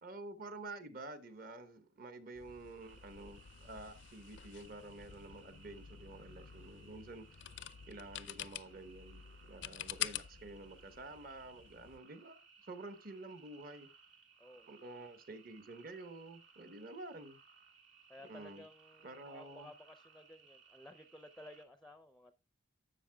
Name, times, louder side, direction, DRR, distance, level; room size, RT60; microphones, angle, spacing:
voice 1, 0.0-7.3 7.9-12.4 12.7-13.9 14.7-17.4 18.3-18.6 19.0-19.7, right 2 dB, 45° right, 1.0 m, -49 dB
sound 1, 2.4-12.0, left 12 dB, 65° left, 0.4 m, -48 dB
sound 2, 2.8-21.6, right 5 dB, 70° right, 2.0 m, -63 dB
voice 2, 14.4-15.1 18.1-22.3, left 1 dB, ahead, 0.5 m, -56 dB
12.0 x 7.5 x 2.2 m
head